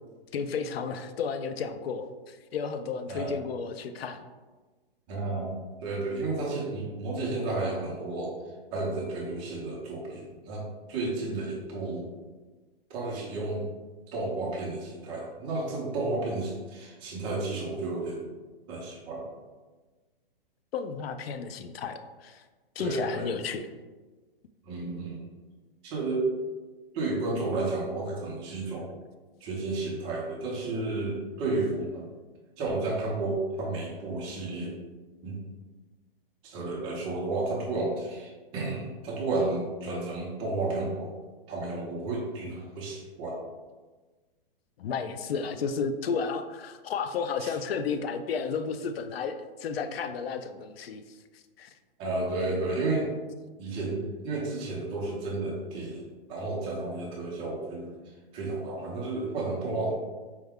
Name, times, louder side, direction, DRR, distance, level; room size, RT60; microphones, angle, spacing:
voice 1, 0.3-4.2 20.7-22.4 22.8-23.7 44.8-51.7, left 5 dB, 90° left, 9 dB, 0.5 m, -33 dB
voice 2, 5.1-8.4 8.7-12.1 12.9-13.7 14.1-18.3 18.7-19.2 22.8-23.3 24.6-25.2 25.8-26.3 26.9-28.9 29.4-32.0 32.6-34.7 35.2-35.4 36.4-41.1 41.5-43.4 47.4-47.5 52.0-53.1 53.6-57.9 58.3-59.9, right 2 dB, 15° right, -3 dB, 0.5 m, -32 dB
4.6 x 2.2 x 3.5 m, 1.3 s
hypercardioid pair, 155°, 29 cm